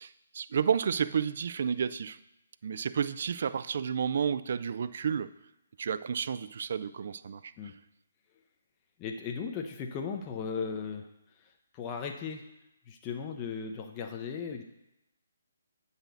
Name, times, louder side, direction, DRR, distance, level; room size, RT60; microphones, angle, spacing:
voice 1, 0.0-2.2 2.6-5.3 5.8-7.5, right 7 dB, 50° right, 14 dB, 0.4 m, -31 dB
voice 2, 9.0-11.1 11.7-12.5 12.9-14.6, left 6 dB, 20° left, 3 dB, 0.6 m, -36 dB
8.9 x 4.1 x 6.5 m, 0.91 s
figure-of-eight pair, 140°, 0 cm